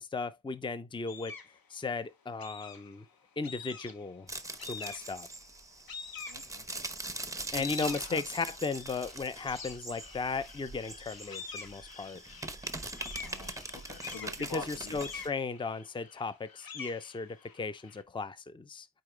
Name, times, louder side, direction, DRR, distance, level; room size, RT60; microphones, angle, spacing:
voice 1, 0.0-1.3 1.7-3.1 3.4-4.3 4.7-5.3 7.5-12.2 14.5-18.9, left 4 dB, 10° left, 0.5 m, -36 dB
sound 1, 1.1-1.6 2.4-3.0 3.4-4.1 4.6-5.3 5.9-6.8 7.3-18.0, left 5 dB, 60° left, 1.2 m, -46 dB
sound 2, 4.3-15.3, right 2 dB, 10° right, 0.9 m, -42 dB
voice 2, 6.3-6.6 7.5-8.2 13.2-15.0, left 4 dB, 90° left, 2.2 m, -44 dB
8.8 x 3.9 x 3.2 m
wide cardioid pair, 95°, 40 cm